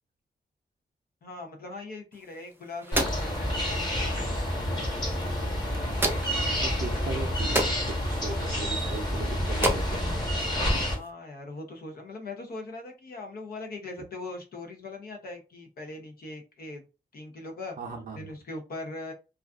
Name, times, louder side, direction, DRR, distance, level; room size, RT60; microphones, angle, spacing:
voice 1, 1.2-5.3 10.9-16.9 17.1-17.8 18.1-19.1, left 2 dB, 65° left, 0.7 m, -41 dB
sound 1, 2.1-11.1, right 1 dB, 15° right, 0.5 m, -35 dB
sound 2, 2.9-10.9, equal, 25° left, 1.0 m, -29 dB
voice 2, 6.3-10.2 17.8-18.3, right 4 dB, 55° right, 0.6 m, -38 dB
2.4 x 2.3 x 2.3 m
wide cardioid pair, 100°, 17 cm